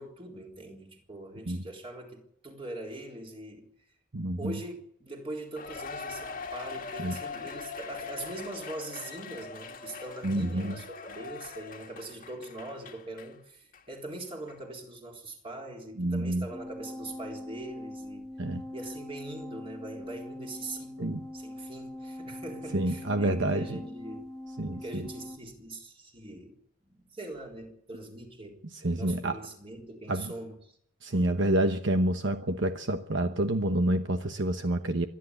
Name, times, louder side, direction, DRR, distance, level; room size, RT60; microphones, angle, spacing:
voice 1, 0.0-3.7 4.4-18.3 18.7-24.3 24.7-26.6 26.9-28.6 28.9-30.8, right 2 dB, 25° right, 3.8 m, -42 dB
voice 2, 4.1-4.6 7.0-7.2 10.2-10.8 16.0-16.5 18.4-18.6 21.0-21.2 22.7-23.8 24.6-25.1 28.8-29.4 30.1-30.3 31.0-35.1, right 1 dB, 60° right, 1.0 m, -28 dB
Cheering, 5.6-13.3 13.7-13.8 14.5-14.6, left 5 dB, 40° left, 1.8 m, -41 dB
sound 1, 16.5-25.4, left 1 dB, 5° left, 1.5 m, -42 dB
25.5 x 10.5 x 9.8 m
head